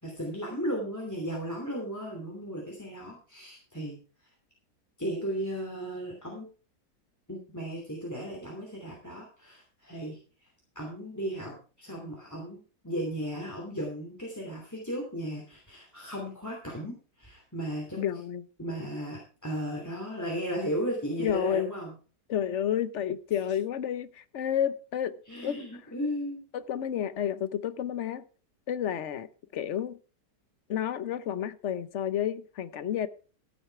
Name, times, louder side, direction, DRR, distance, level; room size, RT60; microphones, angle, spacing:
voice 1, 0.0-4.0 5.0-6.5 7.3-10.2 10.7-18.1 18.6-22.0 25.3-26.4, equal, 10° left, 2.9 m, -35 dB
voice 2, 18.0-18.4 21.2-21.7 22.3-25.2 25.4-25.6 26.5-28.2 28.7-29.3 29.5-30.0 30.7-33.1, left 9 dB, 55° left, 1.0 m, -30 dB
14.5 x 8.3 x 4.6 m
omnidirectional pair, 1.7 m